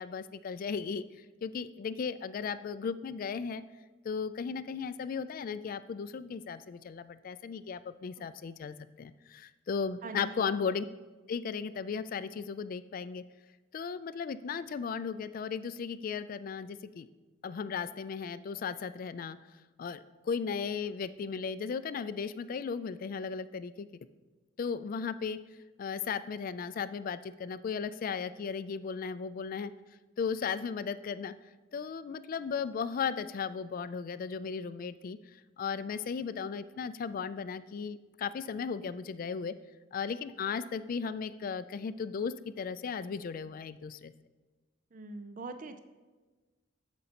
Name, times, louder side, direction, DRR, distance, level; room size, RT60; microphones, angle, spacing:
voice 1, 0.0-3.6 4.0-10.8 11.3-13.2 13.7-17.1 17.4-19.4 19.8-23.9 24.6-25.4 25.8-29.7 30.2-31.3 31.7-39.5 39.9-44.1, left 6 dB, 45° left, 14 dB, 0.3 m, -36 dB
voice 2, 10.0-10.5 44.9-45.8, right 3 dB, 45° right, 8 dB, 0.5 m, -43 dB
13.5 x 5.2 x 2.9 m, 1.3 s
head